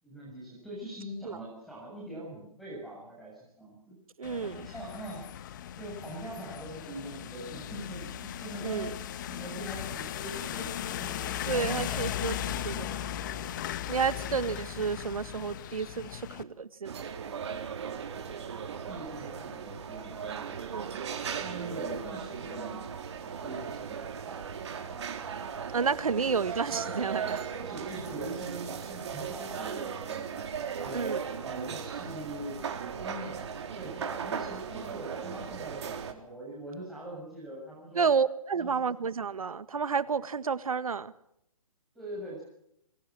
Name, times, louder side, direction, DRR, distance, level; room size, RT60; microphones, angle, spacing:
voice 1, 0.0-4.0 4.5-5.2 5.8-12.4 18.7-20.9 21.4-24.4 26.9-27.2 27.6-30.3 30.7-32.6 33.0-38.1 38.6-38.9 42.0-42.4, right 1 dB, ahead, -4 dB, 7.1 m, -43 dB
sound 1, 4.2-16.4, left 10 dB, 35° left, 1.6 m, -37 dB
voice 2, 4.2-4.7 8.6-8.9 11.5-12.4 12.6-13.1 13.9-17.0 20.7-21.0 25.7-27.4 30.9-31.4 37.9-41.1, right 5 dB, 75° right, 14 dB, 1.6 m, -31 dB
sound 2, 16.8-36.1, right 7 dB, 50° right, 4.1 m, -37 dB
29.5 x 22.0 x 6.2 m, 0.76 s
hypercardioid pair, 155°, 18 cm